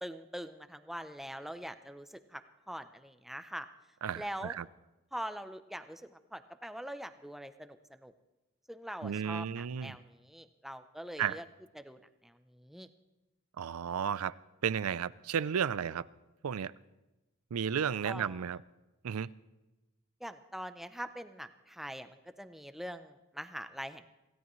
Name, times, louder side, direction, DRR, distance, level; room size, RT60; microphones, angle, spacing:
voice 1, 0.0-2.4 2.7-3.7 4.1-4.5 5.1-8.1 8.7-11.4 11.8-12.9 18.0-18.4 20.2-24.1, equal, ahead, 0.6 m, -43 dB
voice 2, 4.0-4.6 9.0-10.0 11.2-11.4 13.6-14.3 14.6-16.0 16.4-16.7 17.5-18.6 19.0-19.3, right 7 dB, 90° right, 0.5 m, -33 dB
26.0 x 16.5 x 3.1 m
head